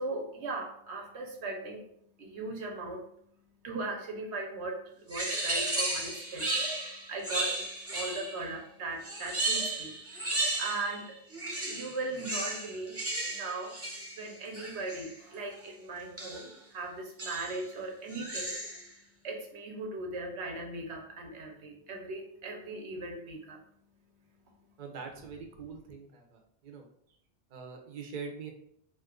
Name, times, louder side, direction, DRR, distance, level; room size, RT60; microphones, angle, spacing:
voice 1, 0.0-25.2 25.5-25.9, right 2 dB, 85° right, 2 dB, 1.0 m, -39 dB
sound 1, 5.1-8.5 9.0-11.0 11.3-15.1 16.2-16.5 17.2-17.6 18.1-18.9, right 2 dB, 15° right, 0.8 m, -34 dB
voice 2, 24.8-26.2 26.6-26.8 27.5-28.5, right 5 dB, 55° right, 3 dB, 0.6 m, -42 dB
2.6 x 2.4 x 3.6 m, 0.69 s
omnidirectional pair, 1.1 m